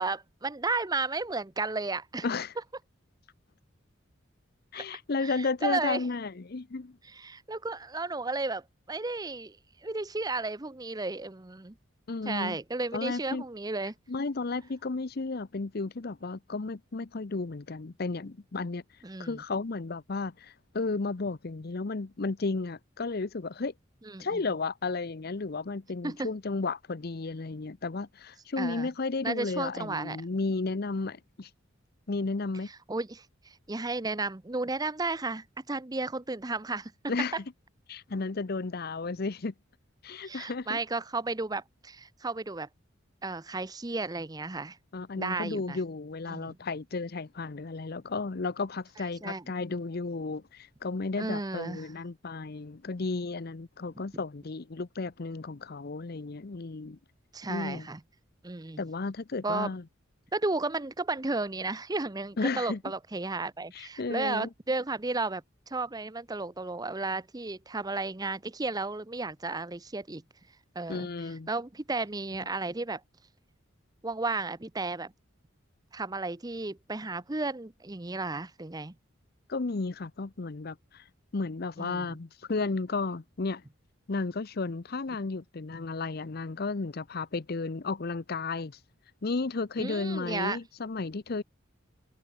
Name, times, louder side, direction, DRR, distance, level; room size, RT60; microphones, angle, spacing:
voice 1, 0.0-2.3 4.7-4.8 5.2-6.0 7.0-9.6 9.8-11.7 12.2-13.9 19.0-19.4 24.1-24.4 26.0-26.3 28.6-28.9 29.2-30.2 32.9-36.9 40.2-42.7 43.2-44.8 45.1-45.8 46.3-46.6 49.2-49.4 51.2-51.9 57.3-58.0 58.4-58.8 59.4-59.7 60.3-65.4 65.7-70.2 70.7-71.1 71.5-73.0 74.0-75.1 75.9-78.9 81.8-82.2 89.8-90.6, right 3 dB, 20° right, 0.7 m, -33 dB
voice 2, 2.2-2.5 4.7-7.0 12.1-12.6 12.9-13.4 14.1-18.8 19.2-23.7 24.2-31.5 32.1-32.7 37.1-37.3 37.9-39.5 40.0-40.8 44.9-57.0 57.5-57.9 58.8-59.8 62.4-62.8 63.7-64.5 70.9-71.5 79.5-81.0 81.3-83.6 84.1-88.8 89.2-91.4, left 3 dB, 50° left, 0.7 m, -33 dB
head